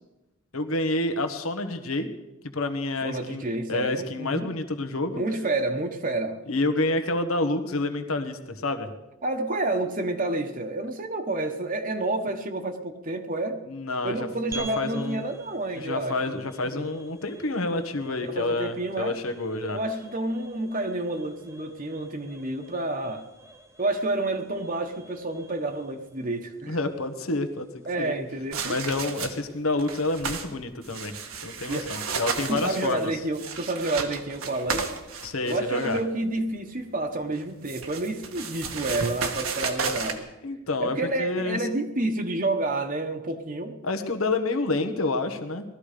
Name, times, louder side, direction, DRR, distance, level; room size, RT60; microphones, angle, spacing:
voice 1, 0.5-2.1 2.5-5.2 6.5-8.9 13.7-14.2 14.5-15.2 15.7-19.8 26.7-28.1 28.6-31.1 31.4-33.1 35.2-36.0 40.4-41.7 43.8-45.6, left 2 dB, 80° left, 8 dB, 1.4 m, -28 dB
voice 2, 3.0-4.5 5.1-6.4 9.2-13.6 14.0-16.4 16.6-16.9 18.2-19.2 19.7-23.2 23.8-26.8 27.8-28.8 31.7-31.9 32.5-34.9 35.4-40.2 40.8-43.8, right 2 dB, 40° right, 5 dB, 1.1 m, -29 dB
sound 1, 14.5-29.1, right 3 dB, 15° right, 1.0 m, -49 dB
sound 2, 28.5-29.5 29.8-30.5 30.8-36.0 37.3-40.2, right 5 dB, 85° right, 1.6 m, -33 dB
19.0 x 13.5 x 5.1 m, 0.99 s
head